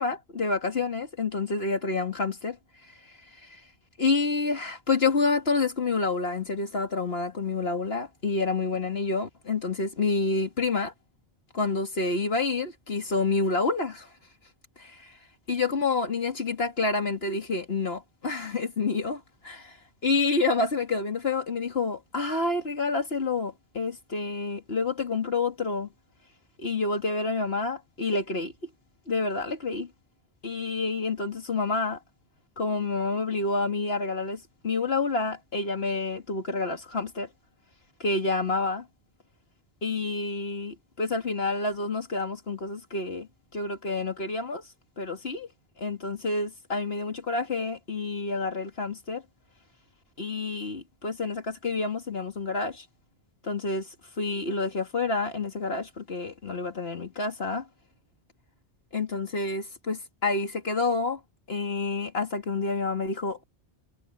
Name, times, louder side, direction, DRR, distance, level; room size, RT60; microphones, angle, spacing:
voice 1, 0.0-2.6 3.4-3.6 4.0-10.9 11.5-14.1 14.8-15.1 15.5-19.8 20.0-25.9 26.6-28.5 29.1-29.9 30.4-32.0 32.6-37.3 38.0-38.9 39.8-44.6 45.0-45.5 45.8-49.2 50.2-52.9 53.4-53.9 54.2-57.7 58.9-61.2 61.5-63.4, left 3 dB, 65° left, 2.4 m, -28 dB
omnidirectional pair, 1.1 m